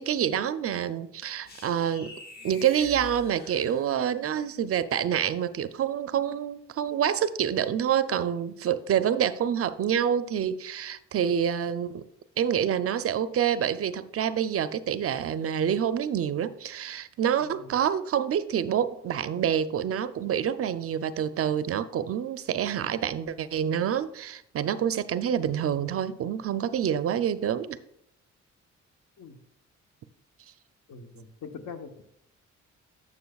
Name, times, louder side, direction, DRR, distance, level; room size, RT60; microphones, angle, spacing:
voice 1, 0.0-2.1 2.4-12.1 12.4-27.8, right 9 dB, 50° right, 13 dB, 0.5 m, -27 dB
sound 1, 1.5-4.3, left 3 dB, 30° left, 0.9 m, -46 dB
voice 2, 17.4-17.7 29.2-29.4 30.9-32.0, left 5 dB, 65° left, 6 dB, 1.0 m, -43 dB
11.5 x 6.8 x 2.3 m, 0.72 s
cardioid pair, 90°, 30 cm